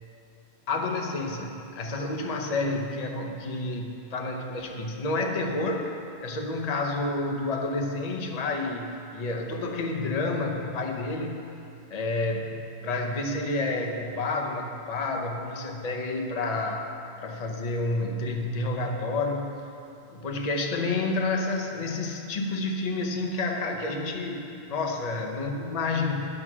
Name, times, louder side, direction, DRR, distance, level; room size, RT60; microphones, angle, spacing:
voice 1, 0.7-5.9 6.2-11.4 11.9-16.9 17.2-19.5 20.1-26.3, left 2 dB, 40° left, 2 dB, 0.8 m, -29 dB
9.7 x 6.4 x 6.1 m, 2.6 s
omnidirectional pair, 1.1 m